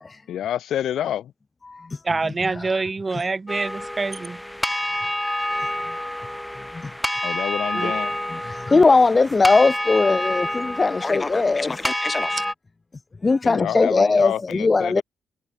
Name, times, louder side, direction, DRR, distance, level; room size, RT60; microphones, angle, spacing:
voice 1, 0.3-1.3 7.2-8.2 13.4-15.0, left 11 dB, 70° left, 3.0 m, -28 dB
voice 2, 2.0-4.4 7.7-7.9 12.4-12.5, right 3 dB, 25° right, 0.5 m, -26 dB
sound 1, 3.5-12.5, left 1 dB, 5° left, 2.0 m, -28 dB
voice 3, 8.5-12.4 13.2-15.0, left 3 dB, 25° left, 0.7 m, -19 dB
cardioid pair, 90°, 0 cm